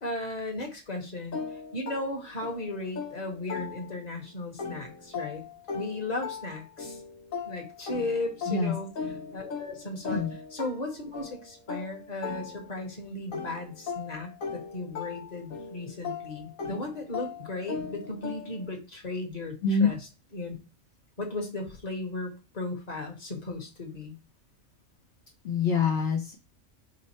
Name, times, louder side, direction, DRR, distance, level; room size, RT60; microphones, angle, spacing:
voice 1, 0.0-1.4 1.7-5.4 5.7-7.0 7.4-8.9 9.3-10.2 10.5-20.0 20.3-20.6 21.2-24.2, left 2 dB, 35° left, 1 dB, 1.2 m, -36 dB
sound 1, 1.3-4.2 4.6-12.9 13.3-18.8, left 5 dB, 75° left, 1.4 m, -39 dB
voice 2, 25.4-26.3, left 5 dB, 60° left, 2 dB, 0.9 m, -25 dB
5.3 x 2.1 x 4.1 m, 0.32 s
omnidirectional pair, 1.4 m